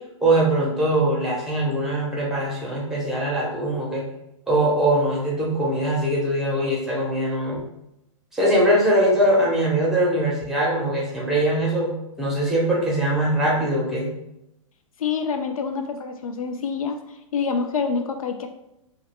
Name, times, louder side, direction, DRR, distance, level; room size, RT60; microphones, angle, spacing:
voice 1, 0.2-4.1 4.5-7.6 8.3-14.1, right 1 dB, ahead, -5 dB, 0.9 m, -22 dB
voice 2, 15.0-17.0 17.3-18.5, left 5 dB, 80° left, 6 dB, 0.4 m, -26 dB
2.3 x 2.2 x 3.4 m, 0.86 s
hypercardioid pair, 130°, 18 cm